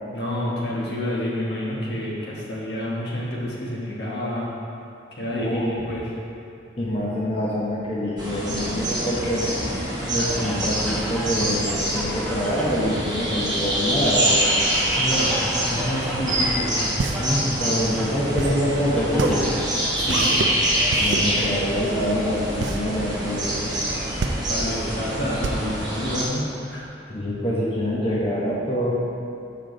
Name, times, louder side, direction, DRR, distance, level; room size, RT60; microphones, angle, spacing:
voice 1, 0.1-4.5 5.1-6.1 14.9-16.8 19.9-20.5 24.5-26.9, left 1 dB, 70° left, -4 dB, 1.3 m, -28 dB
voice 2, 5.4-5.7 6.8-9.4 10.1-14.4 17.2-19.4 21.0-23.7 27.1-28.9, equal, 30° left, -6 dB, 0.8 m, -25 dB
sound 1, 8.2-26.2, right 1 dB, 25° right, 1.2 m, -25 dB
sound 2, 10.0-12.9 14.0-18.2 19.0-19.7, equal, 5° left, 0.6 m, -35 dB
sound 3, 16.5-26.9, right 3 dB, 85° right, 0.4 m, -29 dB
6.8 x 5.0 x 3.8 m, 2.6 s
head